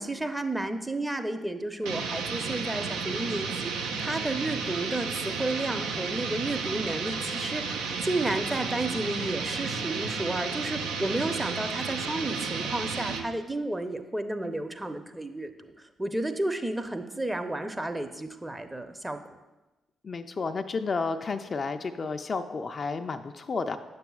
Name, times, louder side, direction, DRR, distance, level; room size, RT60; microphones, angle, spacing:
voice 1, 0.0-19.4, right 2 dB, 15° right, 7 dB, 0.7 m, -32 dB
sound 1, 1.8-13.3, right 5 dB, 75° right, 0.5 m, -32 dB
voice 2, 20.0-23.8, left 4 dB, 45° left, 7 dB, 0.4 m, -31 dB
9.0 x 6.8 x 2.3 m, 1.1 s
hypercardioid pair, 45°, 0 cm